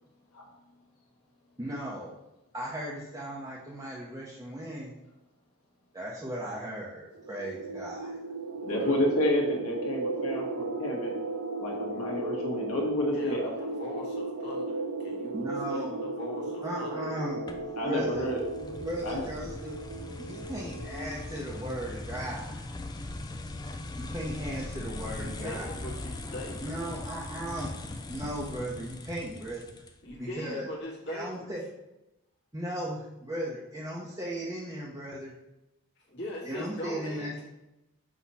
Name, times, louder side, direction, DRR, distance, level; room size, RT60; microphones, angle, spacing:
voice 1, 1.6-2.1 2.5-4.9 5.9-8.1 15.3-16.0 16.6-17.4 17.7-18.3 18.8-19.8 20.2-22.6 23.9-25.7 26.6-27.7 28.1-29.7 30.2-30.7 31.1-31.6 32.5-35.3 36.4-37.5, right 1 dB, 15° right, -5 dB, 0.8 m, -37 dB
sound 1, 7.2-21.5, right 2 dB, 90° right, 0.5 m, -36 dB
voice 2, 8.6-11.1 11.6-13.5 17.7-18.4 19.0-19.2, left 1 dB, 90° left, -2 dB, 1.5 m, -30 dB
voice 3, 13.1-17.0 25.1-26.9 30.0-31.6 36.1-37.5, left 1 dB, 50° left, -3 dB, 1.7 m, -41 dB
sound 2, 17.5-30.2, left 2 dB, 20° left, 0.3 m, -40 dB
6.1 x 3.0 x 5.5 m, 0.94 s
head